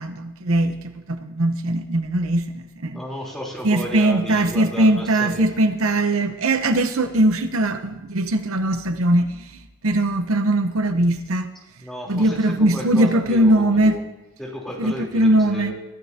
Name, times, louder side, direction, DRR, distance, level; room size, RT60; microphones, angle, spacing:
voice 1, 0.0-3.0 3.6-11.5 12.1-14.0 14.8-15.7, right 1 dB, 75° right, 0.9 m, -20 dB
voice 2, 2.9-5.4 11.8-14.0 14.4-15.7, left 1 dB, ahead, 3.5 m, -33 dB
24.0 x 12.5 x 2.8 m
head